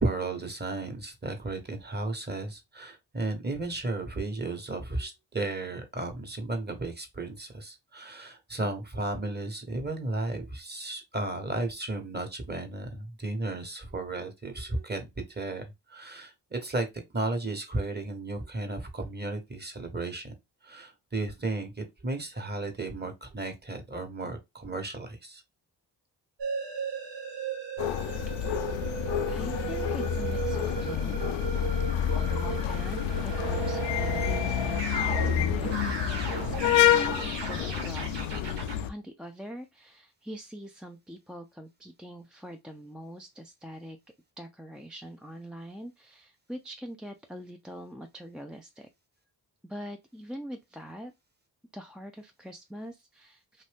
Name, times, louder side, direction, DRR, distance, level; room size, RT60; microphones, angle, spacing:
voice 1, 0.0-16.9 17.1-20.3 20.6-25.4, right 2 dB, 20° right, 1.2 m, -34 dB
sound 1, 26.4-38.8, right 5 dB, 65° right, 1.3 m, -36 dB
sound 2, 27.8-38.9, left 10 dB, 75° left, 0.5 m, -28 dB
voice 2, 28.4-28.8 29.3-31.4 32.1-35.7 36.4-38.1 38.8-44.0 44.4-48.9 49.6-51.1 51.7-53.6, equal, ahead, 0.4 m, -43 dB
2.7 x 2.6 x 3.4 m
supercardioid pair, 45°, 46 cm